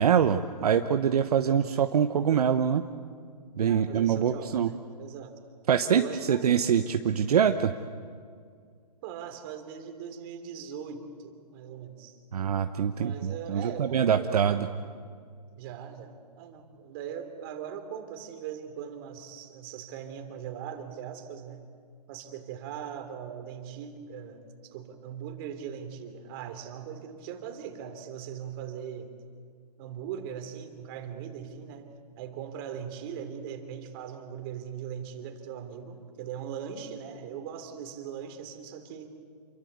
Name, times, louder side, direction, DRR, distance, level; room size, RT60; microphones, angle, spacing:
voice 1, 0.0-2.8 3.6-4.7 5.7-6.0 6.3-7.7 12.3-14.7, right 8 dB, 65° right, 7 dB, 1.1 m, -24 dB
voice 2, 1.5-1.8 3.6-5.4 5.9-6.5 9.0-12.2 12.9-14.7 15.6-21.7 22.1-29.2 29.8-39.1, right 8 dB, 35° right, 7 dB, 3.2 m, -40 dB
28.5 x 23.0 x 8.2 m, 2.1 s
hypercardioid pair, 145°, 21 cm